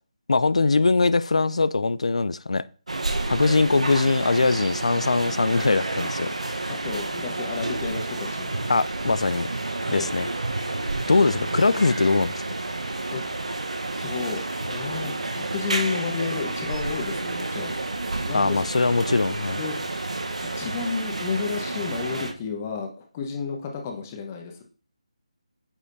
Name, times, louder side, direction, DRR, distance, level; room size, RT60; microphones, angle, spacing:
voice 1, 0.3-2.6 3.2-6.3 8.7-9.5 9.9-10.3 11.1-12.3 18.3-19.6, left 3 dB, 70° left, 0.3 m, -21 dB
sound 1, 2.9-22.3, right 2 dB, 70° right, 0.9 m, -30 dB
voice 2, 6.8-8.6 9.8-10.1 13.1-13.2 14.0-17.7 18.2-18.6 19.5-19.7 20.5-24.6, left 5 dB, 25° left, 1.1 m, -31 dB
8.6 x 4.9 x 2.6 m
figure-of-eight pair, 155°, 4 cm